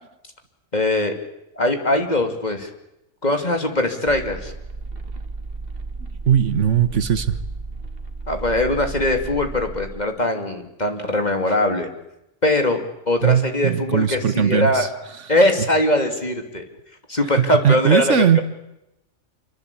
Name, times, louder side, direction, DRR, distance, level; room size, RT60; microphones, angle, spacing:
voice 1, 0.7-1.2 1.5-2.7 3.2-4.5 8.3-11.9 12.4-14.9 15.3-16.6 17.1-18.4, left 1 dB, 35° left, 5 dB, 3.1 m, -21 dB
sound 1, 4.1-10.0, right 3 dB, 50° right, 2.4 m, -33 dB
voice 2, 6.3-7.4 13.2-14.9 17.4-18.4, right 8 dB, 70° right, 13 dB, 1.5 m, -19 dB
27.0 x 24.0 x 8.6 m, 0.87 s
omnidirectional pair, 1.3 m